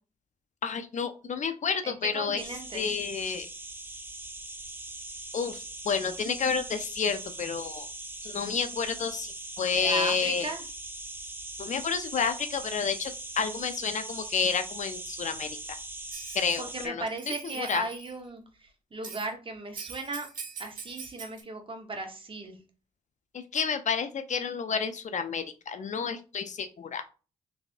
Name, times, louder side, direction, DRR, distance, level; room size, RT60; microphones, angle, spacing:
voice 1, 0.6-2.4 2.7-3.5 5.3-7.9 8.2-10.5 11.6-15.8 16.3-17.0 17.6-17.8 23.3-27.0, left 6 dB, 50° left, 9 dB, 0.5 m, -30 dB
voice 2, 1.8-2.9 9.7-10.6 16.6-20.3 20.6-22.6, right 2 dB, 35° right, 4 dB, 1.1 m, -36 dB
sound 1, 2.4-16.9, right 2 dB, 15° right, 0.6 m, -41 dB
Bell, 16.1-16.6 17.1-18.2 19.0-19.3 19.7-21.4, right 6 dB, 60° right, 1.2 m, -43 dB
3.4 x 3.3 x 2.5 m, 0.34 s
supercardioid pair, 55°, 16 cm